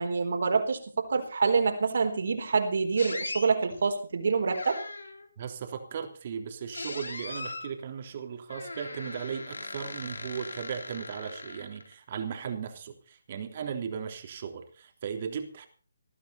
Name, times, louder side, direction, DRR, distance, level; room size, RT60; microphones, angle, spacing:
voice 1, 0.0-4.8, right 4 dB, 60° right, 5 dB, 4.4 m, -26 dB
sound 1, 3.0-3.5 4.5-5.3 6.7-7.7 8.5-11.9, left 2 dB, 80° left, 4.0 m, -39 dB
voice 2, 5.4-15.7, right 7 dB, 40° right, 5 dB, 3.5 m, -37 dB
20.0 x 14.0 x 4.3 m, 0.40 s
figure-of-eight pair, 150°, 0 cm